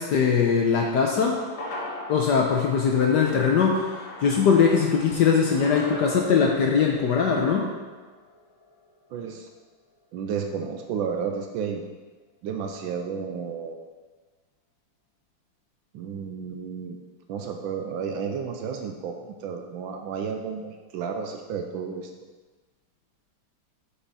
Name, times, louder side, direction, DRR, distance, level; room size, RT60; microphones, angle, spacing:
voice 1, 0.0-1.4 2.1-7.7, left 6 dB, 70° left, 0 dB, 1.0 m, -21 dB
sound 1, 0.8-9.3 9.6-9.7, left 1 dB, 55° left, 1.4 m, -41 dB
voice 2, 9.1-9.5 10.1-11.8 12.4-13.8 15.9-17.0 17.3-22.1, right 6 dB, 75° right, 4 dB, 1.3 m, -32 dB
7.2 x 5.6 x 4.1 m, 1.3 s
omnidirectional pair, 2.4 m